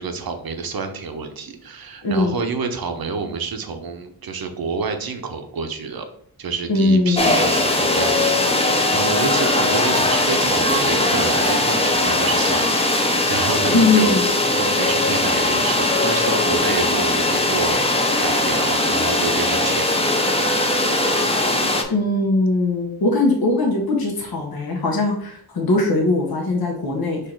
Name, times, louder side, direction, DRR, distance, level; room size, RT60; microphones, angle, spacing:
voice 1, 0.0-6.1 6.4-17.8 18.2-20.5, right 5 dB, 65° right, 6 dB, 0.8 m, -28 dB
voice 2, 2.0-2.4 6.7-7.4 13.7-14.3 21.9-27.2, left 2 dB, 70° left, 0 dB, 1.0 m, -20 dB
sound 1, 7.1-21.8, left 2 dB, 15° left, 0.6 m, -19 dB
4.5 x 2.6 x 4.4 m, 0.63 s
wide cardioid pair, 80°, 39 cm